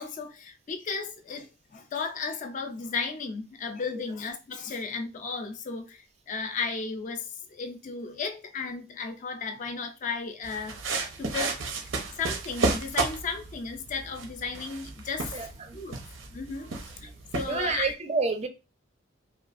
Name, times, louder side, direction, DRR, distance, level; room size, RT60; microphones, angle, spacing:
voice 1, 0.0-10.8 11.2-11.6 12.2-15.4 15.7-16.0 16.3-17.9, left 5 dB, 40° left, 0.4 m, -34 dB
sound 1, 10.4-17.9, right 3 dB, 85° right, 0.7 m, -33 dB
voice 2, 15.3-15.8 17.5-18.5, right 4 dB, 35° right, 0.4 m, -29 dB
3.0 x 2.3 x 2.4 m
head